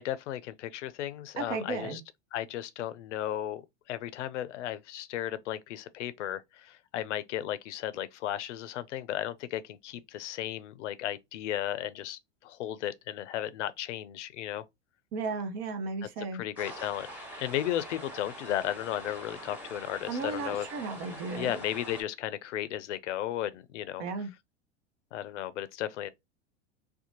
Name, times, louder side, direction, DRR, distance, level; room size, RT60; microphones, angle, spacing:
voice 1, 0.0-2.0 2.3-3.6 3.9-14.6 16.3-17.1 17.4-20.7 21.4-24.0 25.1-26.1, left 12 dB, 80° left, 0.5 m, -35 dB
voice 2, 1.4-2.0 15.1-16.4 20.1-21.6 24.0-24.3, right 4 dB, 55° right, 0.7 m, -34 dB
sound 1, 16.6-22.0, equal, 5° right, 1.1 m, -44 dB
2.6 x 2.2 x 2.8 m
hypercardioid pair, 100°, 35 cm